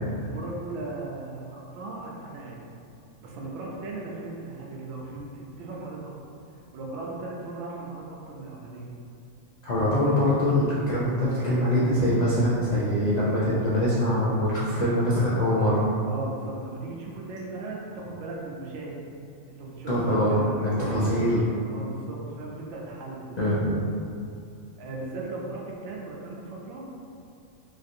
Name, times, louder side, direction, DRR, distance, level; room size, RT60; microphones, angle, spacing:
voice 1, 0.2-2.6 3.2-6.1 6.5-8.9 10.0-10.2 16.0-19.0 19.5-23.4 24.8-26.9, right 2 dB, 70° right, -3 dB, 0.8 m, -37 dB
voice 2, 9.6-15.8 19.9-21.4 23.4-23.7, left 1 dB, 80° left, -8 dB, 0.3 m, -23 dB
3.1 x 2.5 x 2.6 m, 2.4 s
omnidirectional pair, 1.3 m